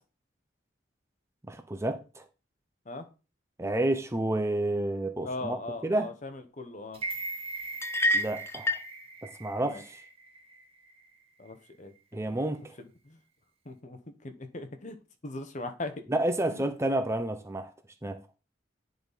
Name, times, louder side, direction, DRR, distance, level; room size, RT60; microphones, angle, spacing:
voice 1, 1.4-2.2 3.6-6.1 8.1-8.7 9.2-10.0 12.1-12.8 16.1-17.7 18.0-18.2, right 1 dB, 15° right, 0.7 m, -30 dB
voice 2, 5.2-7.0 9.6-9.8 11.4-11.9 12.8-13.2 13.6-15.0 15.2-15.9 16.5-16.6, left 2 dB, 40° left, 1.0 m, -39 dB
sound 1, 6.9-11.1 11.5-11.6, right 3 dB, 30° right, 1.1 m, -40 dB
sound 2, 7.8-8.9, left 1 dB, 15° left, 0.3 m, -27 dB
10.0 x 4.0 x 4.1 m
head